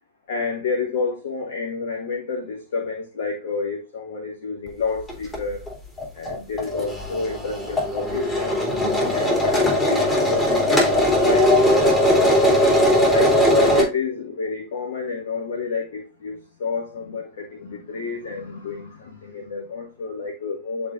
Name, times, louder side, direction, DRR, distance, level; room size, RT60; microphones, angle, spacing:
voice 1, 0.3-5.6 6.1-8.6 9.1-11.5 13.1-20.9, left 4 dB, 60° left, 1.5 m, -29 dB
sound 1, 5.1-5.4 5.7-5.8 6.0-13.8, left 1 dB, 15° left, 3.0 m, -19 dB
10.5 x 4.2 x 2.6 m
figure-of-eight pair, 90°, 0 cm